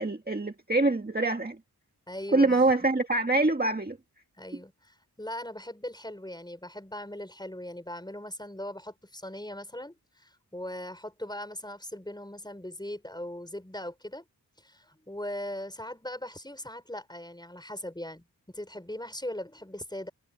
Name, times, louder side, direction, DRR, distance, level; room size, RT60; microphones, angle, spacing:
voice 1, 0.0-1.6 2.3-4.0, right 2 dB, 25° right, 1.8 m, -25 dB
voice 2, 2.1-2.6 4.4-14.2 14.6-20.1, left 1 dB, 10° left, 5.7 m, -39 dB
wide cardioid pair, 100°, 40 cm